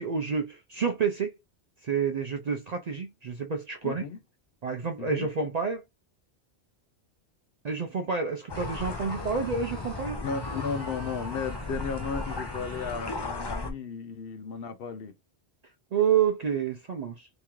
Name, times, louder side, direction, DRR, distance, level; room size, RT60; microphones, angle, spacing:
voice 1, 0.0-1.3 1.8-4.0 4.6-5.8 7.6-10.2 15.9-17.3, right 6 dB, 55° right, 0.4 m, -29 dB
voice 2, 3.8-4.2 5.0-5.3 10.2-15.1, left 5 dB, 65° left, 0.8 m, -34 dB
sound 1, 8.5-13.7, left 3 dB, 30° left, 0.5 m, -36 dB
Screaming, 8.5-13.3, right 2 dB, 20° right, 0.7 m, -48 dB
3.4 x 3.1 x 3.0 m
omnidirectional pair, 1.1 m